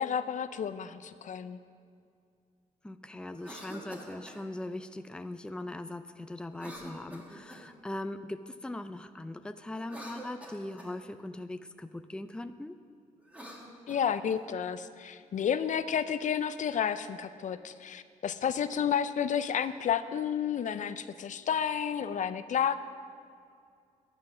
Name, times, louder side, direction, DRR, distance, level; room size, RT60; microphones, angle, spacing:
voice 1, 0.0-1.6 13.9-22.8, left 8 dB, 60° left, 12 dB, 0.5 m, -31 dB
voice 2, 2.8-12.8, left 1 dB, 5° left, 10 dB, 0.5 m, -40 dB
Cough, 3.3-4.4 6.5-7.8 9.7-11.0 13.2-14.4, equal, 10° right, 2.0 m, -46 dB
11.0 x 9.6 x 6.1 m, 2.3 s
cardioid pair, 85°, 14 cm